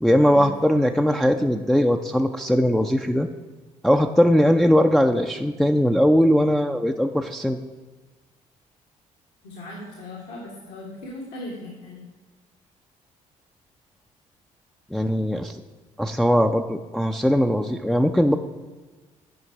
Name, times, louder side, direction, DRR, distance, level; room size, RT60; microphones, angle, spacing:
voice 1, 0.0-3.3 3.8-7.6 14.9-15.6 16.0-18.4, equal, ahead, 4 dB, 0.5 m, -20 dB
voice 2, 9.4-12.0, left 1 dB, 70° left, -4 dB, 1.7 m, -38 dB
9.5 x 5.2 x 4.7 m, 1.3 s
hypercardioid pair, 50°, 18 cm